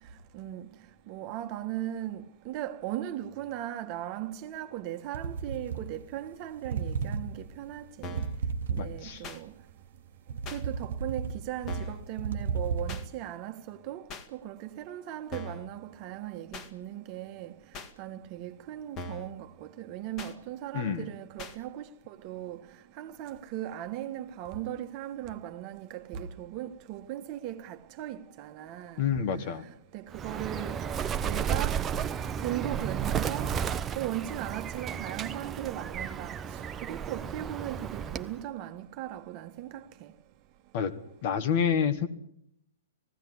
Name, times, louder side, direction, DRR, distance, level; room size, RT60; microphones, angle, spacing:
voice 1, 0.0-0.7 1.1-8.3 8.7-9.5 10.5-29.1 29.4-30.9 31.2-31.9 32.4-33.6 33.9-40.1, right 12 dB, 40° right, 1.4 m, -38 dB
sound 1, 5.1-6.3 6.6-9.3 9.8-13.0, right 5 dB, 70° right, 1.1 m, -34 dB
sound 2, 8.0-8.4 9.2-9.4 10.4-10.6 11.7-12.0 12.9-13.0 14.1-14.3 15.3-15.7 16.5-16.7 17.7-17.9 18.9-19.3 20.2-20.3 21.4-21.6, left 2 dB, 30° left, 1.9 m, -40 dB
voice 2, 8.8-9.2 20.7-21.1 29.0-29.6 40.7-40.9 41.2-42.1, left 7 dB, 45° left, 1.8 m, -28 dB
Bird, 30.1-38.4, right 8 dB, 20° right, 0.9 m, -33 dB
19.0 x 16.5 x 9.5 m
hypercardioid pair, 120°, 0 cm